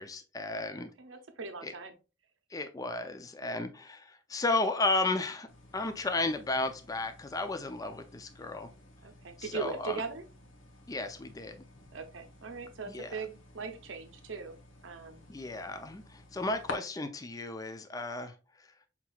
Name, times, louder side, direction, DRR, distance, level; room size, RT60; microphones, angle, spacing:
voice 1, 0.0-0.9 1.6-1.7 2.5-5.5 5.7-8.7 9.4-10.0 10.9-11.6 12.9-13.2 15.3-18.3, left 2 dB, 20° left, 0.4 m, -33 dB
voice 2, 0.8-1.9 9.0-10.2 11.9-15.3, right 5 dB, 70° right, 0.6 m, -40 dB
sound 1, 5.5-16.7, left 3 dB, 75° left, 0.9 m, -51 dB
5.9 x 2.9 x 2.3 m
head